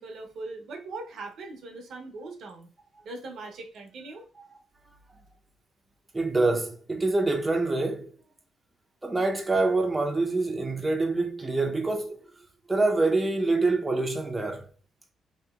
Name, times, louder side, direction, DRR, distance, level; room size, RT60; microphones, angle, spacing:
voice 1, 0.0-2.7 3.0-4.2, right 3 dB, 65° right, 0.7 m, -40 dB
voice 2, 6.1-8.1 9.0-12.2 12.7-14.7, right 2 dB, 15° right, 0.6 m, -25 dB
2.8 x 2.7 x 2.3 m
cardioid pair, 90°, 0 cm